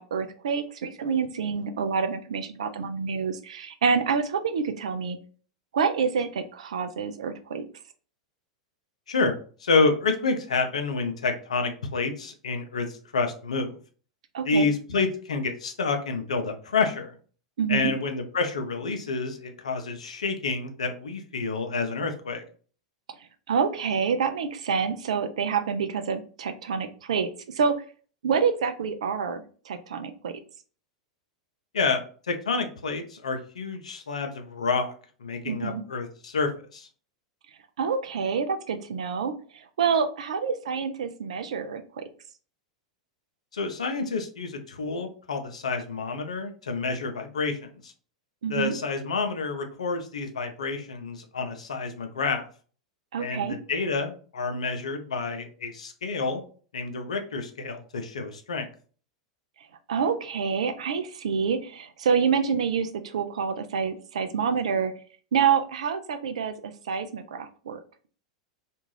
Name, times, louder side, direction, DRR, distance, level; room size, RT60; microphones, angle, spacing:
voice 1, 0.0-5.2 5.7-7.6 14.3-14.7 17.6-17.9 23.5-27.8 28.2-30.3 35.4-35.8 37.8-42.0 48.4-48.7 53.1-53.6 59.9-64.9 65.3-67.8, right 6 dB, 75° right, 8 dB, 0.4 m, -27 dB
voice 2, 9.6-13.8 14.4-17.2 17.7-22.4 31.7-34.9 35.2-36.9 43.5-47.9 48.5-52.4 53.2-56.4 56.7-58.7, left 4 dB, 85° left, 6 dB, 0.5 m, -28 dB
2.5 x 2.3 x 3.1 m, 0.41 s
hypercardioid pair, 95°, 3 cm